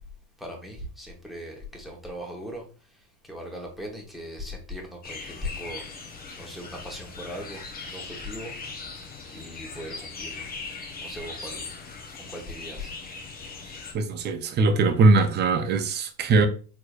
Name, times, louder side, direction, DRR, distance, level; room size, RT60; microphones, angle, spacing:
voice 1, 0.4-2.7 3.3-5.8 6.4-8.6 9.3-10.5 11.0-11.6 12.3-12.9, left 1 dB, ahead, 1.0 m, -38 dB
sound 1, 5.0-13.9, left 4 dB, 20° left, 0.7 m, -39 dB
voice 2, 13.9-16.5, right 3 dB, 25° right, 0.4 m, -21 dB
4.5 x 3.1 x 2.4 m
hypercardioid pair, 95°, 49 cm